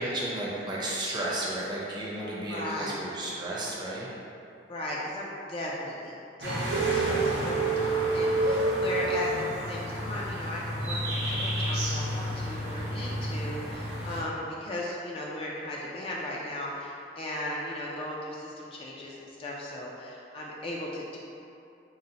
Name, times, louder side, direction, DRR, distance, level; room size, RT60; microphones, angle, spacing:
voice 1, 0.0-4.1, right 1 dB, 25° right, -6 dB, 0.6 m, -33 dB
voice 2, 2.5-3.1 4.7-21.2, left 1 dB, 30° left, -4 dB, 0.3 m, -37 dB
sound 1, 6.4-14.2, equal, 65° right, 0.7 m, -32 dB
sound 2, 6.7-9.9, right 3 dB, 80° right, 0.3 m, -27 dB
3.9 x 2.0 x 4.0 m, 2.6 s
head